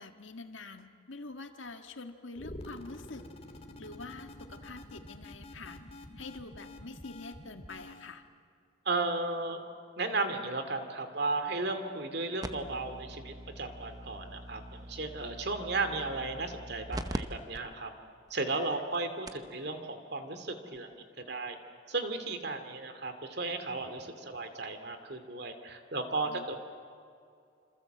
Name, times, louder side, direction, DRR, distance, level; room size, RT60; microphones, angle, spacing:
voice 1, 0.0-3.3 3.8-5.8 6.2-8.2 18.7-18.8 26.3-26.6, left 3 dB, 75° left, 6 dB, 1.7 m, -46 dB
sound 1, 2.3-8.1, left 1 dB, 30° left, 2.2 m, -48 dB
voice 2, 8.9-9.6 10.0-17.9 18.3-21.6 21.9-26.6, right 3 dB, 55° right, 8 dB, 2.4 m, -35 dB
sound 2, 12.4-17.2 17.5-17.6 18.3-18.4 18.9-19.0 19.3-19.5 20.8-20.9, right 1 dB, 20° right, 0.9 m, -42 dB
27.0 x 27.0 x 7.9 m, 2.4 s
head